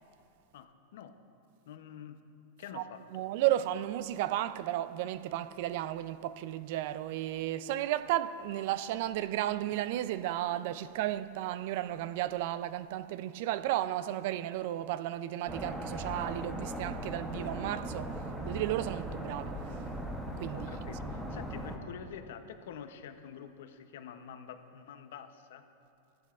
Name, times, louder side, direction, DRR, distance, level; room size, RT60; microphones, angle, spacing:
voice 1, 0.5-1.2 1.7-2.2 2.6-3.2 20.5-25.7, left 8 dB, 75° left, 0.7 m, -47 dB
voice 2, 3.1-19.8 20.4-20.7, right 13 dB, 60° right, 0.3 m, -33 dB
sound 1, 15.5-21.8, right 1 dB, 5° right, 0.8 m, -38 dB
14.5 x 11.5 x 2.4 m
supercardioid pair, 135°, 0 cm